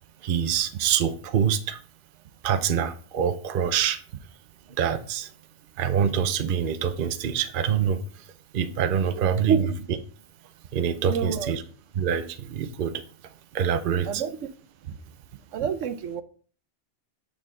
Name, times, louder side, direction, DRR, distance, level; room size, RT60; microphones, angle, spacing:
voice 1, 0.2-1.8 2.4-4.0 4.8-5.3 5.8-8.0 8.5-9.7 10.7-11.6 12.0-13.0 13.5-14.2, right 8 dB, 55° right, 0.7 m, -25 dB
voice 2, 9.2-9.7 11.1-11.5 14.1-14.3 14.9-15.0 15.5-16.2, right 7 dB, 85° right, 1.0 m, -27 dB
8.3 x 4.8 x 3.7 m
omnidirectional pair, 1.2 m